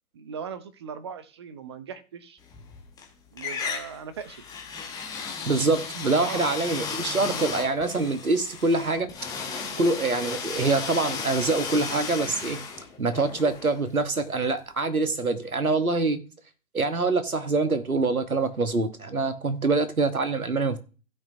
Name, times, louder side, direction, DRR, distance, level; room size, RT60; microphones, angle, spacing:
voice 1, 0.1-2.4 3.3-4.4 6.2-6.4, right 7 dB, 20° right, 0.5 m, -39 dB
sound 1, 2.5-3.1 3.4-14.2, left 5 dB, 10° left, 1.1 m, -35 dB
voice 2, 5.4-9.1 9.8-12.6 13.0-16.2 16.7-20.8, right 3 dB, 90° right, 1.2 m, -25 dB
16.0 x 5.5 x 2.7 m
figure-of-eight pair, 125°, 42 cm